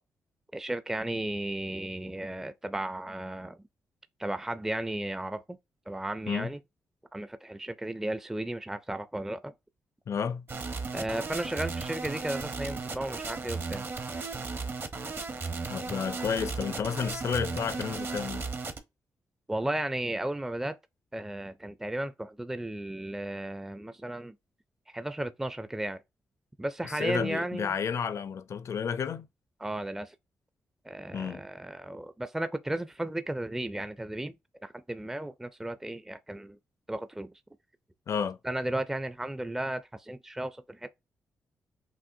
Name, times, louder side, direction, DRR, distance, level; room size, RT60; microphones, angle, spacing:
voice 1, 0.5-3.6 4.2-5.6 5.9-6.6 7.1-9.5 10.9-13.8 19.5-20.8 21.1-24.3 24.9-26.0 26.6-27.7 29.6-30.2 30.8-34.4 34.6-36.6 36.9-37.3 38.4-40.9, right 1 dB, 10° right, 0.4 m, -34 dB
voice 2, 10.1-10.5 15.7-18.5 27.0-29.3 31.1-31.4 38.1-38.4, left 6 dB, 60° left, 0.5 m, -31 dB
sound 1, 10.5-18.8, right 4 dB, 45° right, 0.8 m, -35 dB
6.1 x 2.2 x 2.6 m
cardioid pair, 65°, 5 cm